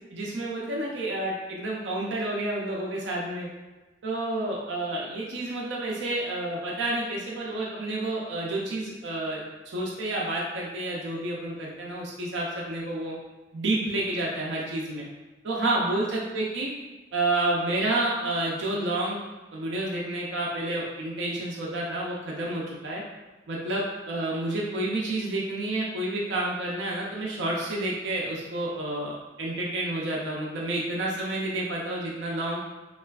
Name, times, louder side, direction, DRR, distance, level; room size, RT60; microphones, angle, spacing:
voice 1, 0.1-3.5 4.0-13.1 13.5-15.1 15.4-16.7 17.1-19.2 19.5-23.0 23.5-32.6, right 2 dB, 70° right, -4 dB, 0.5 m, -29 dB
3.2 x 2.4 x 2.3 m, 1.2 s
head